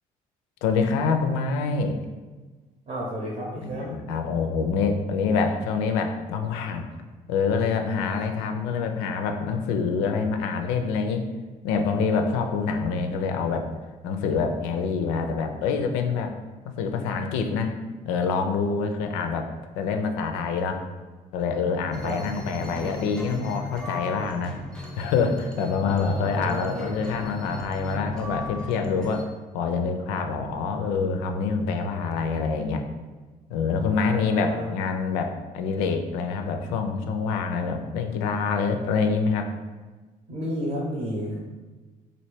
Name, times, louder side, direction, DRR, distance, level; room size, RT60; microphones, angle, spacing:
voice 1, 0.6-2.0 3.6-6.9 7.3-11.2 11.6-13.7 14.0-16.3 16.6-17.7 18.0-19.5 19.8-20.8 21.3-24.6 25.0-29.3 29.5-32.8 33.5-39.5, left 5 dB, 70° left, 6 dB, 0.4 m, -26 dB
voice 2, 2.9-4.0 22.0-22.2 22.4-22.9 25.8-27.0 34.0-34.7 40.3-41.4, equal, 35° right, -4 dB, 0.8 m, -32 dB
sound 1, 21.9-29.2, left 3 dB, 5° left, 0.6 m, -37 dB
3.0 x 2.5 x 3.1 m, 1.3 s
hypercardioid pair, 55°, 19 cm